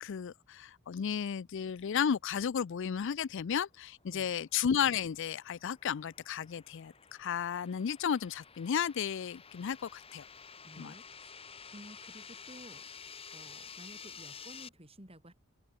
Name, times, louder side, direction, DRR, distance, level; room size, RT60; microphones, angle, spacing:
voice 1, 0.0-6.9 7.2-10.2 10.8-10.9, left 7 dB, 60° left, 0.4 m, -33 dB
sound 1, 4.4-14.7, left 6 dB, 25° left, 2.0 m, -51 dB
voice 2, 10.6-11.4 11.7-12.9 13.3-15.3, right 1 dB, 25° right, 7.4 m, -53 dB
head